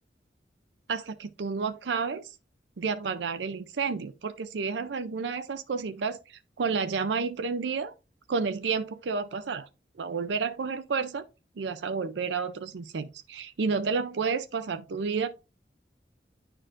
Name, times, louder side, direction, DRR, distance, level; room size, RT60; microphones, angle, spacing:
voice 1, 0.9-2.3 2.8-7.9 8.3-9.7 10.0-11.2 11.6-15.3, right 5 dB, 80° right, 0.5 m, -31 dB
10.0 x 4.4 x 2.5 m
head